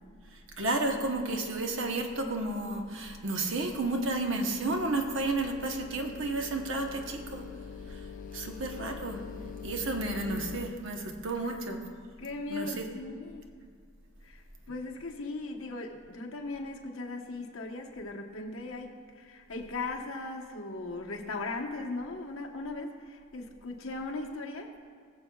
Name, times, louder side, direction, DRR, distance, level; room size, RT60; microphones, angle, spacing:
voice 1, 0.3-7.4 7.9-8.1 8.3-9.2 9.6-11.8 12.5-12.9, right 2 dB, 60° right, 3 dB, 1.0 m, -32 dB
sound 1, 2.6-10.7, left 6 dB, 40° left, 0.3 m, -45 dB
voice 2, 12.2-13.5 14.2-24.7, left 2 dB, 70° left, 1 dB, 1.1 m, -38 dB
20.5 x 7.3 x 2.3 m, 2.1 s
head